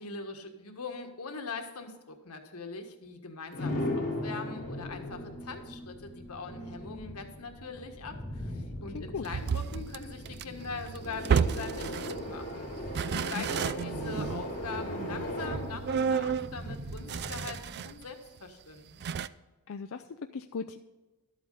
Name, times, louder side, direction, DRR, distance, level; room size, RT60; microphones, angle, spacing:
voice 1, 0.0-12.7 13.3-19.0, left 4 dB, 90° left, 4 dB, 1.6 m, -42 dB
sound 1, 3.5-17.3, left 1 dB, 40° left, 3.1 m, -39 dB
sound 2, 4.5-17.9, left 1 dB, 25° left, 2.9 m, -46 dB
voice 2, 8.9-9.2 13.1-13.4 19.7-20.8, left 5 dB, 65° left, 6 dB, 0.4 m, -38 dB
sound 3, 9.2-12.4 12.8-18.0 18.4-18.5 19.0-19.3, right 6 dB, 50° right, 0.3 m, -32 dB
12.5 x 8.2 x 4.1 m, 1.2 s
head